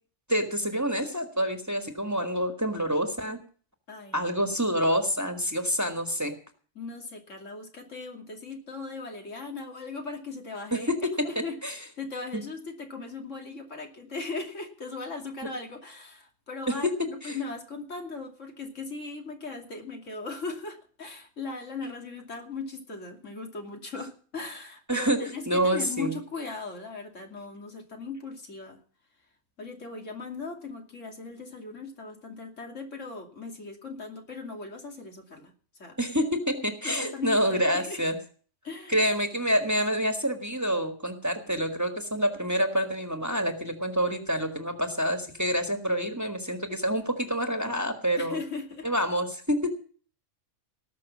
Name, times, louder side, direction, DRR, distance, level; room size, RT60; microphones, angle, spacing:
voice 1, 0.3-3.4 4.1-6.3 10.7-11.1 11.6-11.7 12.3-12.4 16.7-16.8 17.0-17.4 21.8-21.9 24.9-25.2 25.5-26.2 36.0-38.2 38.9-48.4 48.8-49.8, equal, 15° right, 5 dB, 1.6 m, -27 dB
voice 2, 3.9-4.3 6.7-10.9 11.2-28.8 29.6-35.5 35.8-36.0 36.8-38.0 38.6-39.0 48.2-48.9, left 3 dB, 80° left, 2 dB, 3.1 m, -38 dB
18.5 x 6.3 x 7.3 m, 0.43 s
omnidirectional pair, 1.3 m